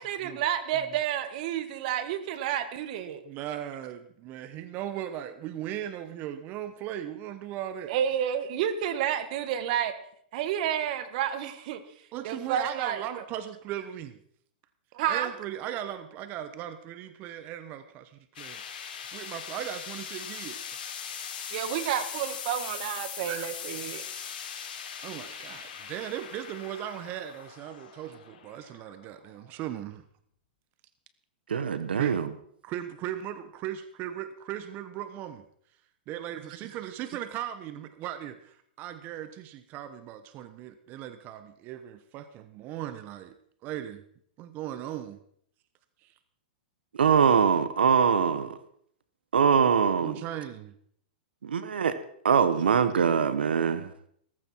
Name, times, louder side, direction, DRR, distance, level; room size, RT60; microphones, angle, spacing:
voice 1, 0.0-3.2 7.9-9.9 10.3-11.8 12.2-13.2 14.9-15.3 21.5-24.0, right 10 dB, 50° right, 11 dB, 1.9 m, -30 dB
voice 2, 3.2-7.9 12.1-14.2 15.1-18.6 19.1-20.6 23.2-23.5 25.0-30.0 32.0-32.2 32.6-35.4 36.1-43.4 43.6-44.0 44.4-45.2 46.0-46.1 50.0-50.7, right 11 dB, 35° right, 11 dB, 1.1 m, -38 dB
sound 1, 18.3-29.5, left 8 dB, 70° left, 4.0 m, -40 dB
voice 3, 31.5-32.3 47.0-48.6 49.3-50.2 51.4-51.9 52.2-53.9, right 7 dB, 90° right, 12 dB, 1.3 m, -23 dB
16.5 x 15.0 x 4.6 m, 0.65 s
hypercardioid pair, 135°, 5 cm